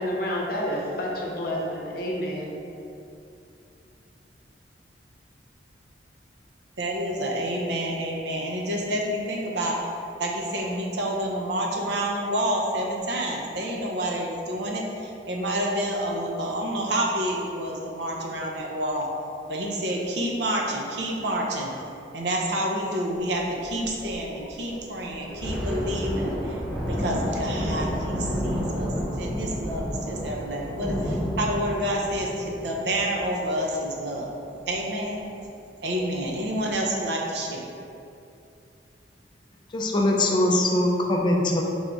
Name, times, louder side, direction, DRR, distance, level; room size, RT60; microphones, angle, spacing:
voice 1, 0.0-2.6, equal, 55° left, -3 dB, 0.7 m, -29 dB
voice 2, 6.8-9.8 10.2-19.1 19.5-21.7 22.1-26.6 26.9-34.3 34.7-35.2 35.8-37.7, right 1 dB, 70° right, -1 dB, 0.6 m, -28 dB
sound 1, 23.1-29.3, equal, 45° right, 1.3 m, -43 dB
Thunder, 25.2-34.2 34.6-34.8 35.2-35.4 36.0-36.5, equal, 5° right, 1.3 m, -30 dB
voice 3, 39.7-41.6, left 1 dB, 25° left, 0 dB, 0.4 m, -22 dB
3.5 x 3.5 x 3.8 m, 2.6 s
head